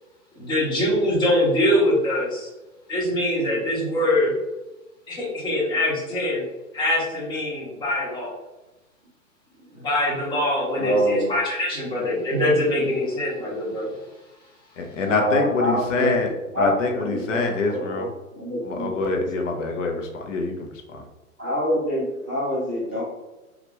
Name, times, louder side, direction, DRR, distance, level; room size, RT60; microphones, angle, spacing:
voice 1, 0.4-2.5 2.9-4.3 5.1-6.4 6.7-8.4 9.7-13.9, left 1 dB, 10° left, -5 dB, 0.8 m, -23 dB
voice 2, 10.7-11.3 15.0-16.3 16.5-18.1 18.3-19.5 21.4-23.0, equal, 10° right, -15 dB, 0.3 m, -26 dB
voice 3, 14.8-16.3 16.6-18.1 18.6-21.0, left 3 dB, 55° left, 3 dB, 0.8 m, -25 dB
3.2 x 2.5 x 3.0 m, 1.1 s
hypercardioid pair, 125°, 45 cm